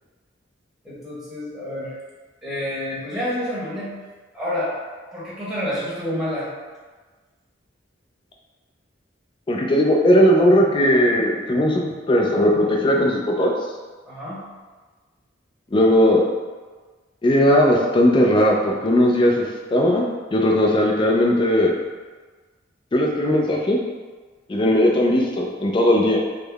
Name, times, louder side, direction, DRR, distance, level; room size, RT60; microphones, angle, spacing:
voice 1, 0.8-1.9 2.4-3.9 4.3-4.7 5.1-6.5 14.1-14.4, left 1 dB, ahead, -10 dB, 1.1 m, -28 dB
voice 2, 9.5-13.5 15.7-16.2 17.2-19.3 19.7-20.1 20.3-21.7 22.9-23.8 24.5-26.2, equal, 25° left, 0 dB, 0.4 m, -17 dB
3.6 x 2.0 x 3.3 m, 1.4 s
head